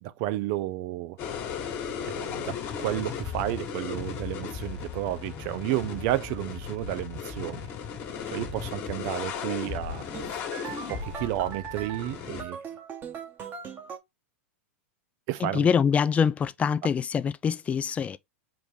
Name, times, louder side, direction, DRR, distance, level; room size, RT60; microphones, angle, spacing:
voice 1, 0.0-1.2 2.1-7.7 8.3-10.4 10.9-12.6 15.3-15.7, right 15 dB, 50° right, 0.5 m, -32 dB
sound 1, 1.2-12.4, left 7 dB, 40° left, 1.6 m, -36 dB
sound 2, 3.0-6.2, right 2 dB, 10° right, 1.3 m, -53 dB
sound 3, 10.1-14.0, right 7 dB, 30° right, 1.1 m, -40 dB
voice 2, 15.4-18.2, left 7 dB, 20° left, 0.3 m, -24 dB
4.8 x 2.5 x 3.5 m
hypercardioid pair, 120°, 7 cm